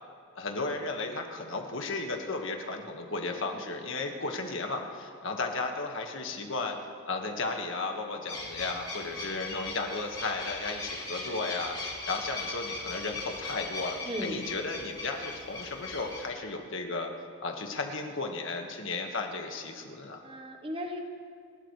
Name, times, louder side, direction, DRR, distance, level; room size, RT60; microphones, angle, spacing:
voice 1, 0.4-6.8 7.0-11.8 12.1-17.1 17.4-20.2, left 3 dB, 65° left, 3 dB, 1.7 m, -34 dB
sound 1, 8.3-16.3, left 3 dB, 20° left, 3.0 m, -39 dB
voice 2, 14.1-14.4 20.2-21.0, equal, 25° right, 3 dB, 1.2 m, -36 dB
30.0 x 13.0 x 3.3 m, 2.2 s
head